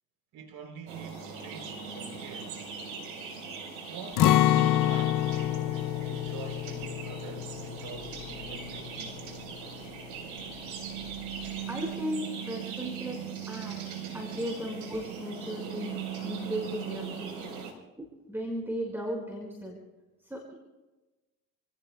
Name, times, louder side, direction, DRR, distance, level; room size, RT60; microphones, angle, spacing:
voice 1, 0.3-2.5 3.9-9.2, right 6 dB, 60° right, 3.6 m, -45 dB
sound 1, 0.9-17.7, right 7 dB, 80° right, 4.5 m, -40 dB
Acoustic guitar, 4.2-10.1 10.4-10.6 11.0-11.5, left 13 dB, 50° left, 0.7 m, -28 dB
voice 2, 11.7-13.2 13.5-13.8 14.1-16.0 16.2-17.5 18.0-19.8 20.2-20.5, equal, 5° right, 5.1 m, -36 dB
29.5 x 17.5 x 2.3 m
hypercardioid pair, 75°, 41 cm